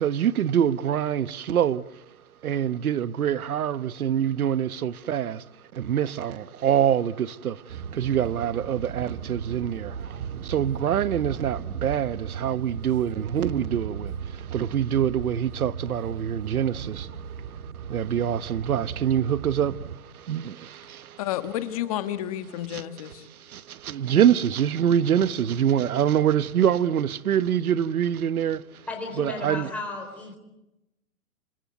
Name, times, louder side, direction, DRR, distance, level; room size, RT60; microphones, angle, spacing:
voice 1, 0.0-2.0 2.4-5.5 5.7-21.2 22.7-28.8 29.2-29.7, right 9 dB, 80° right, 1.2 m, -25 dB
sound 1, 7.7-20.0, right 7 dB, 65° right, 2.2 m, -37 dB
voice 2, 21.2-23.2, left 12 dB, 25° left, 1.4 m, -30 dB
voice 3, 28.9-30.4, left 2 dB, 5° left, 4.0 m, -34 dB
28.0 x 21.5 x 9.4 m
hypercardioid pair, 170°, 43 cm